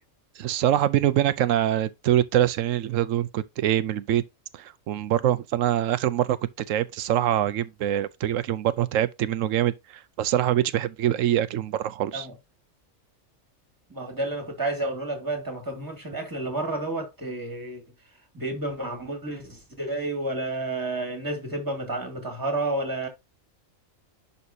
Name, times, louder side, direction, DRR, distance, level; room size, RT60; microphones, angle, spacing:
voice 1, 0.4-4.2 4.5-6.4 6.7-12.3, right 12 dB, 75° right, 0.9 m, -24 dB
voice 2, 13.9-17.8 18.3-23.1, right 2 dB, 15° right, 2.2 m, -30 dB
11.0 x 4.2 x 2.7 m
omnidirectional pair, 1.4 m